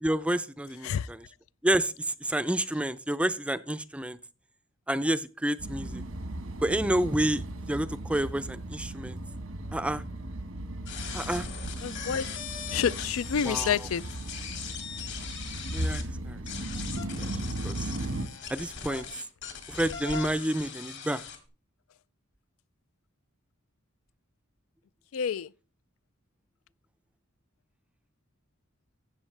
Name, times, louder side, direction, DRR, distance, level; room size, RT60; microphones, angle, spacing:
voice 1, 0.0-1.2 1.6-1.9 2.2-4.2 4.9-6.0 6.6-9.2 9.7-10.0 11.1-11.5 13.4-13.9 15.7-16.4 17.2-17.3 17.6-17.8 18.5-19.1 19.7-21.2, right 1 dB, 5° right, 0.4 m, -29 dB
sound 1, 5.6-18.3, right 1 dB, 90° right, 1.4 m, -36 dB
sound 2, 10.9-16.0 16.4-21.4, left 6 dB, 60° left, 2.3 m, -40 dB
voice 2, 11.8-12.3 12.7-14.0 25.1-25.5, left 7 dB, 85° left, 0.4 m, -28 dB
13.5 x 8.1 x 3.3 m
head